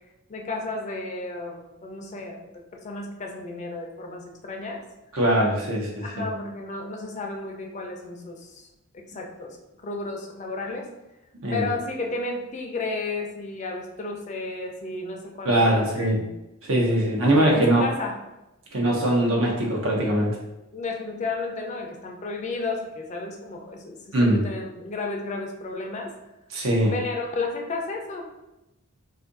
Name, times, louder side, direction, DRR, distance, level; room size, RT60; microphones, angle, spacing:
voice 1, 0.3-4.8 6.0-8.6 8.9-10.9 11.5-16.3 16.9-17.1 17.3-18.2 20.7-26.1 26.9-28.3, left 3 dB, 35° left, 1 dB, 0.5 m, -33 dB
voice 2, 5.1-6.2 11.4-11.7 15.4-16.2 16.6-17.8 18.7-20.4 24.1-24.4 26.5-26.9, right 1 dB, 70° right, -1 dB, 0.8 m, -21 dB
2.6 x 2.5 x 3.8 m, 0.95 s
head